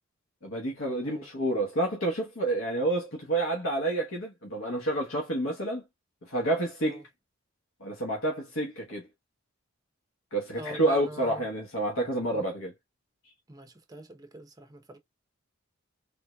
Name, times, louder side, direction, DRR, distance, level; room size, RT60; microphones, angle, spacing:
voice 1, 0.4-5.8 6.3-7.0 7.8-9.1 10.3-12.7, right 1 dB, 80° left, 1.1 m, -29 dB
voice 2, 10.6-11.5 12.3-12.4 13.5-15.0, right 1 dB, 20° right, 0.8 m, -44 dB
3.7 x 3.1 x 2.3 m
head